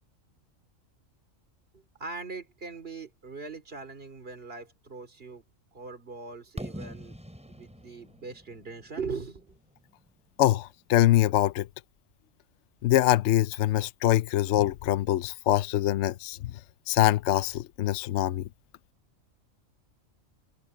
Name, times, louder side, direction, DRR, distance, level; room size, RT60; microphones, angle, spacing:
voice 1, 1.7-5.4 5.7-7.2 7.5-9.6, right 4 dB, 45° right, 3.3 m, -40 dB
Fireworks, 6.6-10.4, equal, 5° right, 7.3 m, -44 dB
voice 2, 10.4-11.7 12.8-16.6 16.9-18.5, left 14 dB, 70° left, 0.8 m, -24 dB
omnidirectional pair, 1.3 m